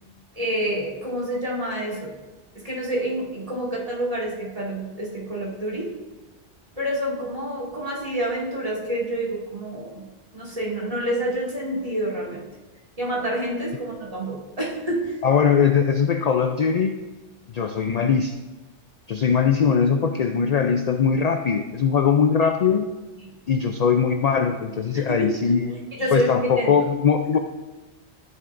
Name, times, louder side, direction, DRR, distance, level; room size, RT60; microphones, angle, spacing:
voice 1, 0.3-2.1 2.5-5.9 6.8-10.1 10.3-12.5 13.0-15.1 23.2-23.3 24.9-25.4 26.0-26.7, right 1 dB, 30° right, -5 dB, 2.4 m, -28 dB
voice 2, 15.2-17.0 17.5-18.4 19.1-22.9 23.5-25.7 26.1-27.4, left 6 dB, 60° left, 6 dB, 0.4 m, -21 dB
13.0 x 9.4 x 2.6 m, 1.2 s
omnidirectional pair, 1.2 m